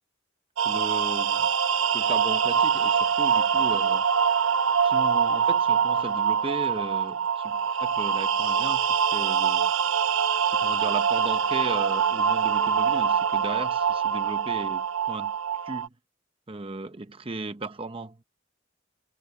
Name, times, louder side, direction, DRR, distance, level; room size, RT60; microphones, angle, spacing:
voice 1, 0.6-1.5 1.9-4.0 4.8-9.7 10.5-15.3 15.6-15.9 16.5-18.2, right 2 dB, 30° right, 0.8 m, -36 dB
sound 1, 0.6-15.9, right 7 dB, 85° right, 0.7 m, -24 dB
head